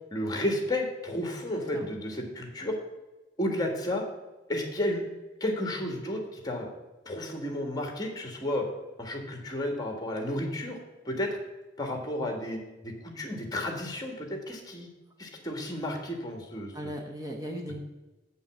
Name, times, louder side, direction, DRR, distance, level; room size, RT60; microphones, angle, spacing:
voice 1, 0.1-2.8 3.4-4.0 4.5-5.0 5.4-6.7 7.0-8.7 9.0-10.8 11.0-11.4 11.8-14.9 15.2-16.9, left 1 dB, 20° left, 3 dB, 1.6 m, -32 dB
voice 2, 1.5-1.9 16.7-17.8, equal, 20° right, 0 dB, 0.9 m, -38 dB
8.0 x 5.6 x 7.3 m, 1.1 s
head